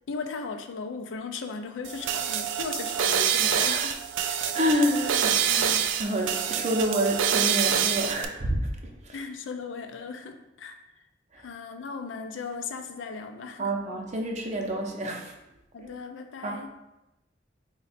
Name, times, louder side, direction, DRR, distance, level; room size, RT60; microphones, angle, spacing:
voice 1, 0.1-3.9 4.3-4.4 9.1-10.8 11.4-13.7 15.7-16.7, left 4 dB, 85° left, 6 dB, 0.4 m, -37 dB
sound 1, 1.8-8.2, right 8 dB, 90° right, 0.3 m, -26 dB
voice 2, 4.5-9.2 11.3-11.4 13.6-15.3 15.8-15.9 16.4-16.8, equal, 40° right, 2 dB, 0.6 m, -28 dB
3.8 x 2.2 x 4.1 m, 0.93 s
head